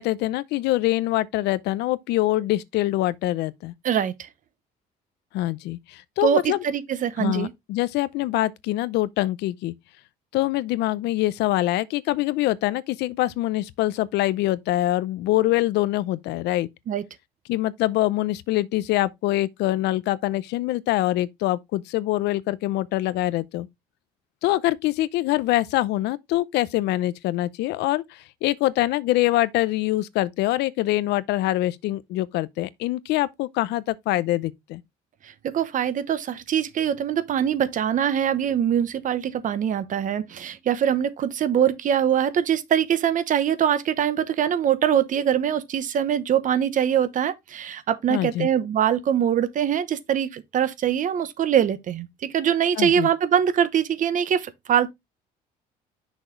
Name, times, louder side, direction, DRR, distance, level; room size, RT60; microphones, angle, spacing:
voice 1, 0.0-3.7 5.3-6.6 7.2-9.7 10.3-16.7 17.5-23.7 24.4-34.8 48.1-48.5 52.8-53.1, left 16 dB, 85° left, 0.6 m, -24 dB
voice 2, 3.8-4.3 6.2-7.5 16.9-17.0 35.2-52.1 52.3-54.9, right 9 dB, 50° right, 0.9 m, -23 dB
6.3 x 4.8 x 3.8 m
cardioid pair, 110°, 17 cm